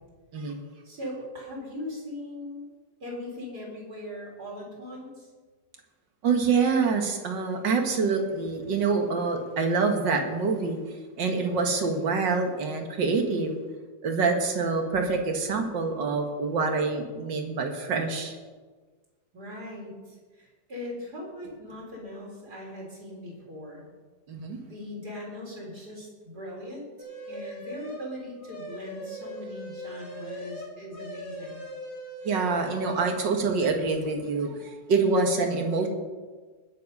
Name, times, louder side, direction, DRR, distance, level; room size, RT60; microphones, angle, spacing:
voice 1, 0.8-2.7 3.0-5.3 19.3-23.9 24.7-26.9 27.3-31.7, left 1 dB, 60° right, -3 dB, 4.6 m, -40 dB
voice 2, 6.2-10.8 11.2-13.5 14.0-18.4 24.3-24.6 32.2-35.9, right 4 dB, 80° right, 4 dB, 2.3 m, -26 dB
sound 1, 27.0-28.1 28.4-33.2, equal, 85° left, 4.1 m, -40 dB
20.0 x 7.3 x 5.4 m, 1.4 s
omnidirectional pair, 1.9 m